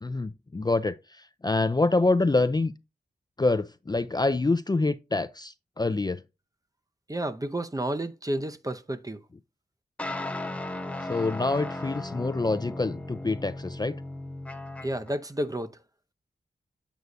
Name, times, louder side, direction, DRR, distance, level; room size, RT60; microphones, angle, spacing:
voice 1, 0.0-2.7 3.4-6.2 11.0-14.0, left 3 dB, 25° left, 0.5 m, -26 dB
voice 2, 7.1-9.2 14.8-15.8, right 1 dB, 20° right, 0.7 m, -31 dB
sound 1, 10.0-15.1, left 2 dB, 5° left, 0.9 m, -36 dB
8.2 x 4.6 x 2.6 m
cardioid pair, 60°, 18 cm